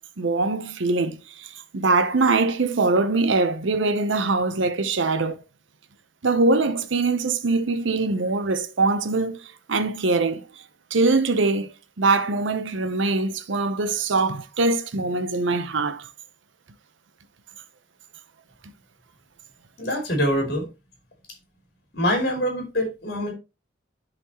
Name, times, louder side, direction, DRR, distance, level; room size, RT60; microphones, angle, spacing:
voice 1, 0.2-5.4 6.2-9.4 9.7-10.4 10.9-16.1, right 3 dB, 80° right, 0.8 m, -23 dB
voice 2, 19.8-20.6 21.9-23.3, equal, 55° left, 2.9 m, -24 dB
11.5 x 4.2 x 2.9 m
head